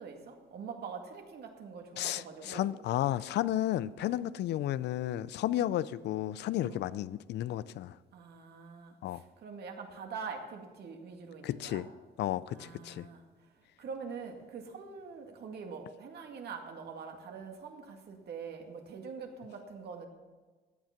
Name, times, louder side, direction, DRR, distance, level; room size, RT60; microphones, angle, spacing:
voice 1, 0.0-2.7 4.1-4.2 6.5-6.8 8.1-11.8 12.5-13.2 13.8-20.1, right 5 dB, 65° right, 3 dB, 2.2 m, -44 dB
voice 2, 2.0-8.0 9.0-9.2 11.4-11.9 12.2-13.1, left 13 dB, 70° left, 17 dB, 0.5 m, -33 dB
16.0 x 9.3 x 5.9 m, 1.3 s
cardioid pair, 90°, 18 cm